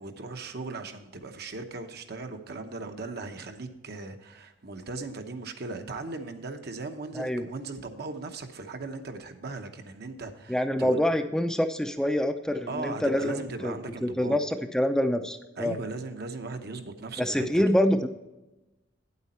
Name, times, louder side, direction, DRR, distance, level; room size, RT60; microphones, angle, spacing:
voice 1, 0.0-11.0 12.7-14.4 15.6-17.8, right 3 dB, 60° right, 6 dB, 0.9 m, -38 dB
voice 2, 10.5-13.7 14.0-15.8 17.2-18.1, left 1 dB, 5° left, 6 dB, 0.5 m, -26 dB
9.1 x 8.2 x 4.2 m, 0.99 s
head